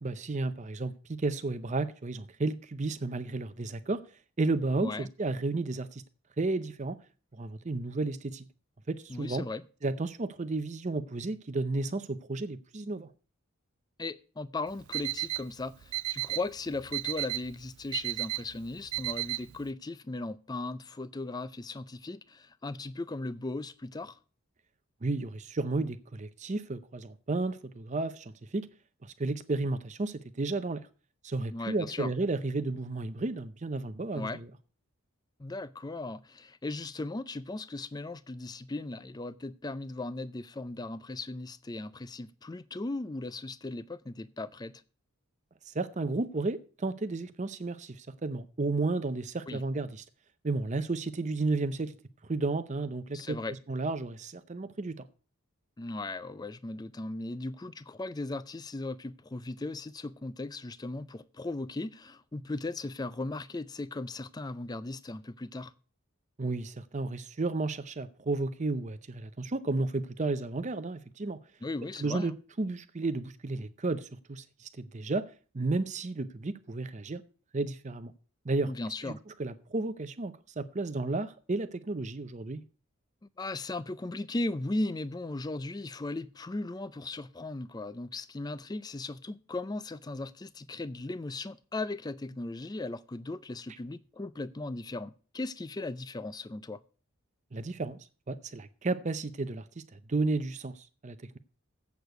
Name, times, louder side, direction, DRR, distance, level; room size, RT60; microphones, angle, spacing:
voice 1, 0.0-4.0 4.4-6.0 6.4-7.0 7.3-8.5 8.9-9.4 9.8-13.1 25.0-28.7 29.0-30.8 31.2-34.5 45.7-50.0 50.4-52.0 52.3-55.0 66.4-71.4 72.0-75.3 75.5-77.2 77.5-78.1 78.4-78.7 79.1-79.2 79.4-82.6 97.5-98.0 98.3-101.4, right 3 dB, 35° right, 0.6 m, -32 dB
voice 2, 9.1-9.6 14.0-24.2 31.5-32.1 34.1-34.4 35.4-44.7 49.5-49.6 53.1-53.5 55.8-65.7 71.6-72.3 78.7-79.2 83.4-96.8, left 2 dB, 20° left, 0.4 m, -37 dB
Alarm, 14.7-19.7, right 19 dB, 85° right, 0.4 m, -35 dB
8.1 x 6.8 x 7.9 m
head